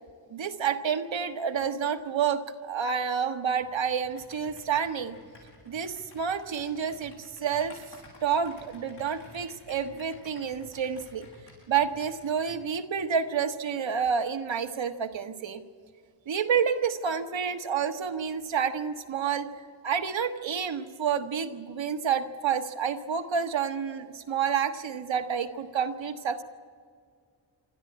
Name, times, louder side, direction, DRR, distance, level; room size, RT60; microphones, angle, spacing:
voice 1, 0.3-5.1 5.7-7.8 8.2-11.3 11.7-15.6 16.3-19.5 19.8-26.4, right 7 dB, 75° right, 7 dB, 1.5 m, -29 dB
Computer keyboard, 3.6-12.6, left 2 dB, 60° left, 7.6 m, -53 dB
27.0 x 13.0 x 8.7 m, 2.1 s
wide cardioid pair, 100°, 46 cm